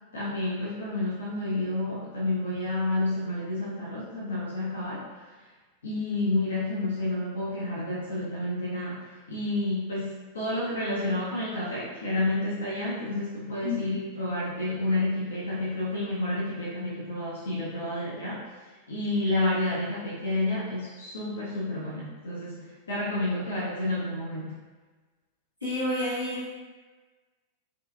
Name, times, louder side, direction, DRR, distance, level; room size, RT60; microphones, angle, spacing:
voice 1, 0.1-5.1 5.8-18.4 18.9-24.6, left 2 dB, 70° left, -7 dB, 0.6 m, -30 dB
voice 2, 25.6-26.6, left 2 dB, 85° left, -11 dB, 1.3 m, -29 dB
2.7 x 2.6 x 2.3 m, 1.3 s
figure-of-eight pair, 90°, 0 cm